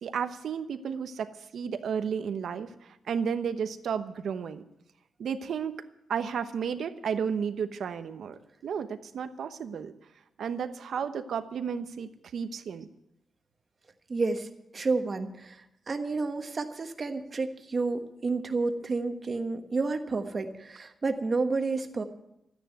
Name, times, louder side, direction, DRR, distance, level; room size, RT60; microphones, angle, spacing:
voice 1, 0.0-1.3 1.5-4.6 5.2-5.8 6.1-9.9 10.4-12.9, right 7 dB, 75° right, 9 dB, 1.0 m, -33 dB
voice 2, 14.1-14.5 14.7-22.0, right 3 dB, 35° right, 6 dB, 1.3 m, -30 dB
13.5 x 9.8 x 9.2 m, 0.86 s
wide cardioid pair, 145°, 0 cm